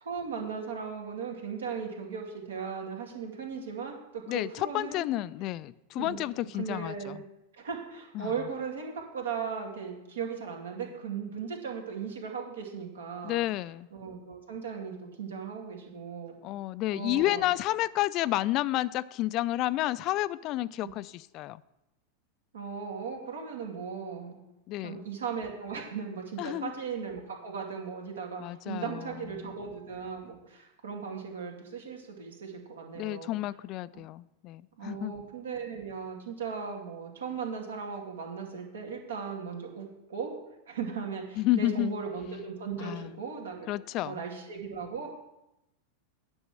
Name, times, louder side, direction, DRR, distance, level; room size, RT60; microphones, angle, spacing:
voice 1, 0.0-5.1 6.0-7.2 7.5-13.4 13.9-16.4 16.9-17.5 20.8-20.9 22.5-24.4 24.8-33.3 33.9-34.0 34.8-40.4 40.7-43.7 44.0-45.1, right 6 dB, 75° right, 1 dB, 2.4 m, -37 dB
voice 2, 4.3-7.2 8.1-8.3 13.2-13.9 16.4-21.6 24.7-25.1 26.4-26.7 28.4-29.6 33.0-35.1 41.4-41.9 42.8-43.2 43.7-44.2, left 16 dB, 45° left, 18 dB, 0.4 m, -31 dB
9.6 x 5.2 x 7.6 m, 0.90 s
figure-of-eight pair, 90°, 0 cm